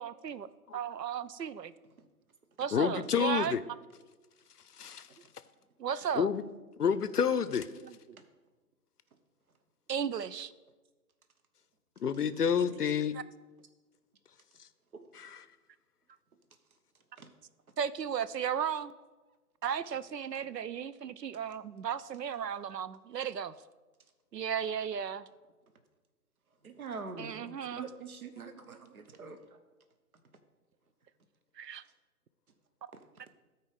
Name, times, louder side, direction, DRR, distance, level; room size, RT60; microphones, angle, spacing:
voice 1, 0.0-1.7 2.6-3.6 5.8-6.3 7.7-8.2 9.9-10.5 12.5-12.6 13.1-13.2 17.8-18.9 19.6-23.5 24.3-25.3 27.2-27.9 28.7-29.0 31.6-31.8, right 8 dB, 80° right, 16 dB, 0.6 m, -35 dB
voice 2, 2.7-3.6 4.8-5.1 6.1-6.4 6.8-7.7 12.0-13.2 15.1-15.4 27.4-27.6, left 7 dB, 70° left, 14 dB, 0.6 m, -29 dB
voice 3, 26.6-27.3 27.8-29.4, right 4 dB, 60° right, 8 dB, 1.0 m, -43 dB
13.0 x 4.6 x 5.0 m, 1.2 s
figure-of-eight pair, 150°, 49 cm